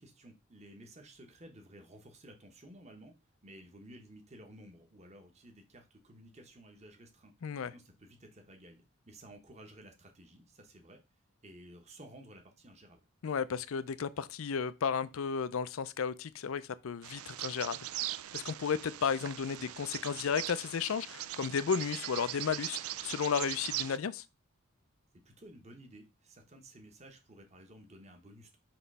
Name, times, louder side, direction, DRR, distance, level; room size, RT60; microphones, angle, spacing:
voice 1, 0.0-3.1 3.4-11.0 11.4-13.1 25.2-28.6, right 1 dB, 30° right, 1.1 m, -54 dB
voice 2, 7.4-7.7 13.2-17.8 18.3-24.2, left 6 dB, 70° left, 0.4 m, -33 dB
Bird vocalization bird call bird song, 17.0-24.0, right 14 dB, 85° right, 0.4 m, -40 dB
5.9 x 3.1 x 5.4 m
head